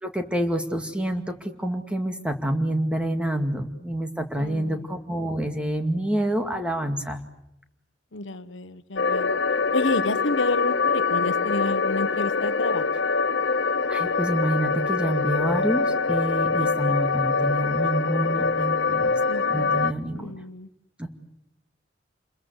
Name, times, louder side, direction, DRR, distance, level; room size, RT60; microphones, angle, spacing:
voice 1, 0.0-7.2 13.9-19.1 19.5-20.3 21.0-21.1, right 1 dB, 5° right, 6 dB, 2.2 m, -27 dB
voice 2, 4.4-4.8 8.1-9.3 9.7-12.8 16.6-16.9 19.3-19.7 20.1-20.7, left 2 dB, 90° left, 12 dB, 1.3 m, -30 dB
sound 1, 9.0-19.9, left 4 dB, 70° left, 0.9 m, -24 dB
28.5 x 21.5 x 8.2 m, 0.83 s
head